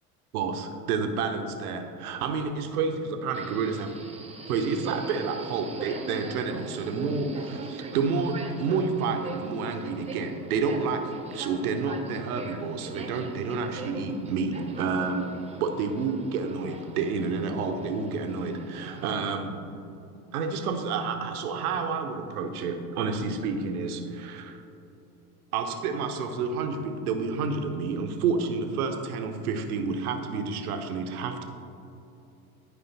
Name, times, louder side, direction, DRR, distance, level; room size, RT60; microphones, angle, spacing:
voice 1, 0.3-3.9 4.5-11.0 11.3-15.3 15.6-19.6 20.3-24.6 25.5-31.4, right 5 dB, 75° right, 5 dB, 0.8 m, -29 dB
Subway metro underground, 3.3-19.1, right 2 dB, 15° right, 0.8 m, -40 dB
10.0 x 5.1 x 4.1 m, 2.8 s
hypercardioid pair, 70°, 45 cm